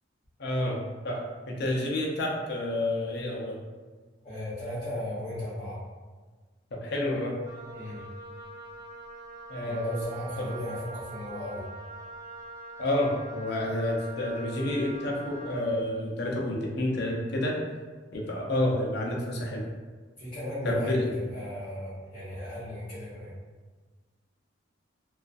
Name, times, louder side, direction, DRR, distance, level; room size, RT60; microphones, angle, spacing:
voice 1, 0.4-3.6 6.7-7.4 9.5-10.0 10.4-10.6 12.8-17.5 18.1-19.6 20.6-21.1, left 1 dB, 60° left, -2 dB, 0.5 m, -29 dB
voice 2, 4.2-5.8 7.7-8.0 9.6-11.6 20.2-21.0 21.3-23.3, left 1 dB, 30° left, -12 dB, 0.8 m, -36 dB
Wind instrument woodwind instrument, 7.4-15.7, right 2 dB, 15° right, 0.4 m, -44 dB
2.4 x 2.3 x 2.5 m, 1.4 s
head